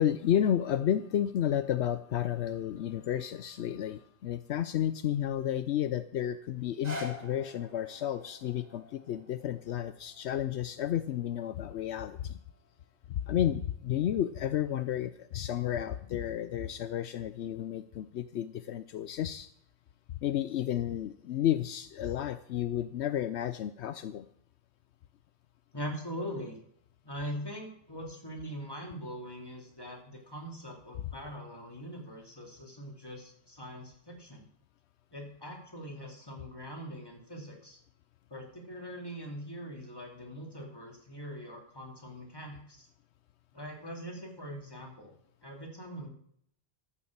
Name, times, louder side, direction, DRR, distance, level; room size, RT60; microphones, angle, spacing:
voice 1, 0.0-12.4 13.3-19.5 20.2-24.2, left 10 dB, 80° left, 12 dB, 0.9 m, -31 dB
sound 1, 6.6-12.7 13.3-13.4, left 1 dB, 35° right, 2.4 m, -47 dB
voice 2, 25.7-26.6 27.0-34.5 35.1-37.8 38.3-42.8 43.5-45.1 45.4-46.1, equal, 20° left, 1 dB, 2.8 m, -42 dB
13.0 x 7.1 x 7.3 m, 0.66 s
omnidirectional pair, 1.1 m